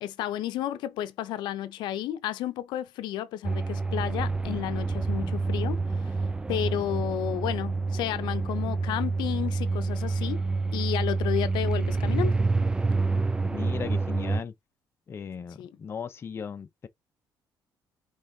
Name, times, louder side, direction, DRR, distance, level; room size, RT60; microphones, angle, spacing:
voice 1, 0.0-6.2 6.5-10.5 10.7-12.4 15.6-15.7, left 12 dB, 90° left, 0.6 m, -32 dB
sound 1, 3.4-14.4, right 3 dB, 10° right, 0.3 m, -28 dB
voice 2, 13.5-14.5 15.1-16.9, left 6 dB, 35° left, 0.6 m, -37 dB
5.4 x 3.2 x 2.7 m
cardioid pair, 130°, 7 cm